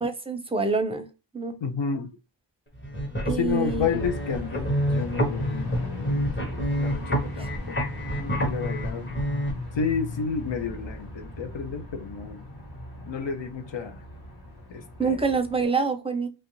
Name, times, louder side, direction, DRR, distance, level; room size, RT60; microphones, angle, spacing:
voice 1, 0.0-1.1 1.3-1.6 3.2-3.9 15.0-16.3, right 4 dB, 15° right, 0.5 m, -26 dB
voice 2, 1.6-2.2 3.3-7.8 8.1-9.1 9.7-12.4 13.0-14.0 14.7-15.3, left 6 dB, 75° left, 0.6 m, -31 dB
sound 1, 2.7-9.5, equal, 25° left, 0.8 m, -28 dB
sound 2, 3.6-15.6, left 2 dB, 55° left, 1.1 m, -37 dB
2.8 x 2.4 x 2.9 m
wide cardioid pair, 65°, 45 cm